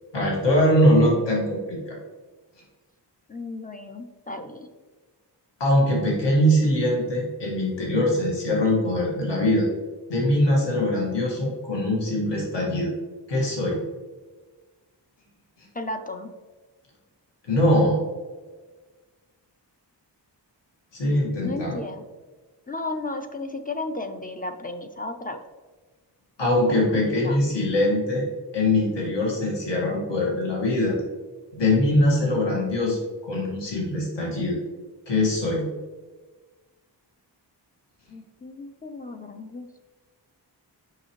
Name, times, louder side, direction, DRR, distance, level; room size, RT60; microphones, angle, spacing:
voice 1, 0.1-1.9 5.6-9.7 10.1-12.9 13.3-13.8 17.4-18.0 20.9-21.8 26.4-28.2 28.5-31.0 31.5-34.6 35.1-35.7, left 1 dB, 75° left, -3 dB, 1.7 m, -22 dB
voice 2, 3.3-4.7 15.7-16.3 21.4-22.0 22.7-25.4 26.7-27.4 38.1-39.7, left 2 dB, 20° left, 6 dB, 0.3 m, -34 dB
6.5 x 5.7 x 3.0 m, 1.3 s
wide cardioid pair, 165°, 43 cm